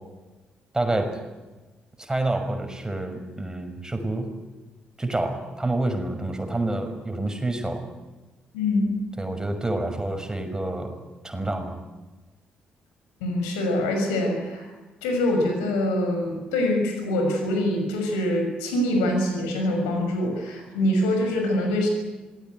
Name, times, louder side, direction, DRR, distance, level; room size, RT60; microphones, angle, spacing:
voice 1, 0.7-1.2 2.0-4.3 5.0-7.9 9.2-10.9 11.2-11.8, right 2 dB, 15° right, 6 dB, 5.9 m, -28 dB
voice 2, 8.5-8.9 13.2-14.7 15.0-21.9, left 1 dB, 75° left, 3 dB, 6.2 m, -24 dB
26.5 x 19.5 x 9.4 m, 1.2 s
figure-of-eight pair, 40°, 4 cm